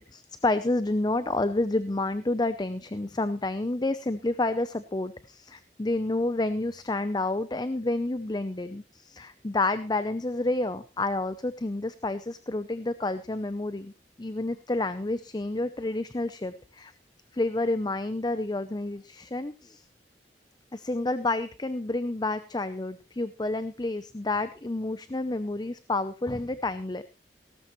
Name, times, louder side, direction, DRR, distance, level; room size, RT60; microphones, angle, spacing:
voice 1, 0.0-13.9 14.2-16.9 17.3-19.8 20.7-27.0, left 2 dB, 25° left, 13 dB, 0.6 m, -29 dB
17.5 x 13.5 x 3.1 m, 0.30 s
head